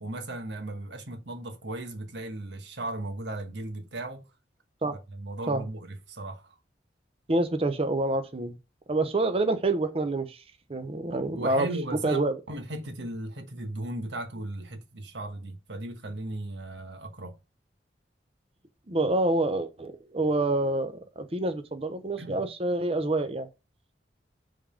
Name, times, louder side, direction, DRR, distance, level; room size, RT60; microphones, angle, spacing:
voice 1, 0.0-4.2 5.1-6.5 11.3-12.2 12.5-17.4 22.2-22.4, right 2 dB, 85° right, 1.3 m, -36 dB
voice 2, 7.3-8.5 8.9-10.4 10.7-11.7 12.0-12.3 18.9-23.5, right 2 dB, 35° right, 0.8 m, -27 dB
5.3 x 3.6 x 5.1 m
head